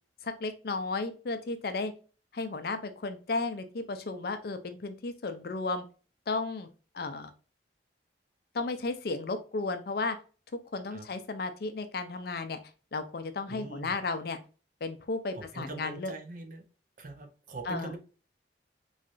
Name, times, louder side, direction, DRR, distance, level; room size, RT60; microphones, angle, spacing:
voice 1, 0.2-1.9 2.3-5.8 6.3-6.7 6.9-7.3 8.5-10.2 10.7-12.6 12.9-14.4 14.8-16.1 17.7-17.9, left 3 dB, 55° left, 9 dB, 0.5 m, -34 dB
voice 2, 13.5-14.0 15.3-16.6 17.0-18.0, right 2 dB, 45° right, 5 dB, 0.7 m, -42 dB
3.8 x 3.2 x 2.5 m, 0.35 s
head